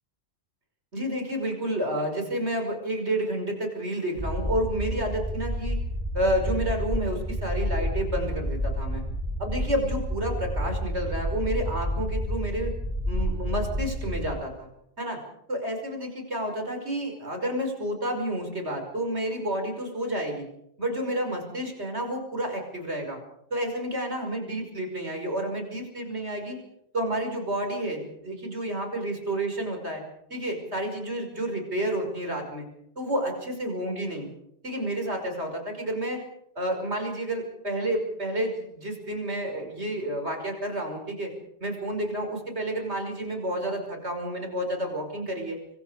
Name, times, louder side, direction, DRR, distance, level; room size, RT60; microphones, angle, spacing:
voice 1, 0.9-5.8 6.1-9.0 9.4-12.7 13.1-14.7 15.0-15.2 15.5-20.4 20.8-23.2 23.5-26.6 26.9-30.0 30.3-32.7 33.0-34.3 34.6-36.2 36.6-41.3 41.6-45.6, right 1 dB, 70° right, 4 dB, 6.0 m, -30 dB
sound 1, 4.2-14.3, equal, 5° left, 7.7 m, -30 dB
26.0 x 24.5 x 5.1 m, 0.75 s
omnidirectional pair, 1.2 m